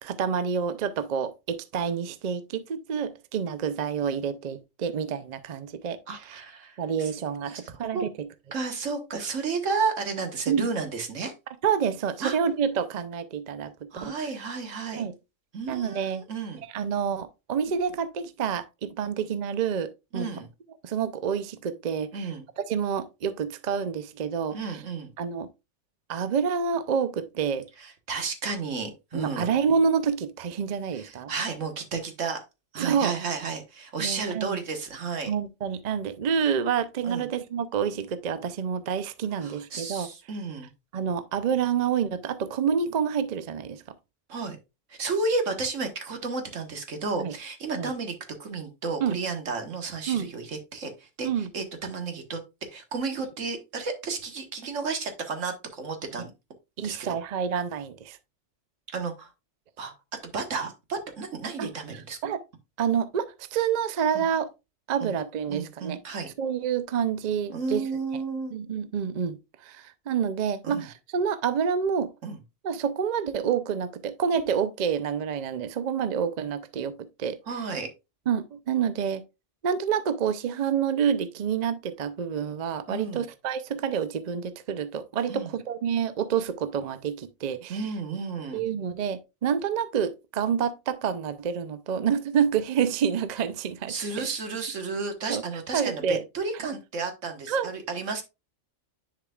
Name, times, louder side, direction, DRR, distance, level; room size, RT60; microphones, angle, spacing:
voice 1, 0.0-6.0 6.3-6.4 6.8-8.3 10.5-10.7 11.6-14.3 15.0-15.1 15.7-16.2 16.7-20.3 20.8-22.3 22.6-24.6 25.2-25.5 26.1-27.7 29.1-31.3 32.8-33.1 34.0-34.6 35.3-40.1 40.9-43.8 47.2-47.3 47.8-47.9 49.0-49.2 50.1-50.3 51.2-51.5 56.8-58.2 61.6-61.7 62.2-62.4 62.8-64.5 64.9-66.0 66.4-67.8 68.5-72.1 72.6-77.4 78.3-79.2 79.6-87.8 88.5-94.3 95.3-95.4 95.7-96.2 97.5-97.7, right 7 dB, 50° right, 0.5 m, -28 dB
voice 2, 6.1-7.1 7.6-8.0 8.5-11.3 12.2-12.4 13.9-15.0 15.5-16.6 20.1-20.5 22.1-22.4 24.5-25.1 27.8-29.5 30.9-32.4 32.7-35.3 37.0-37.3 39.4-40.7 44.3-44.6 44.9-48.1 48.4-52.4 52.7-56.3 56.8-57.2 58.9-59.3 59.8-59.9 60.2-62.2 64.1-64.2 65.0-65.1 65.5-66.3 67.5-68.5 70.6-70.9 72.2-72.4 77.5-77.9 82.9-83.2 85.3-85.5 87.7-88.6 93.9-98.2, right 4 dB, 80° right, 1.7 m, -32 dB
10.0 x 4.9 x 2.3 m
omnidirectional pair, 1.3 m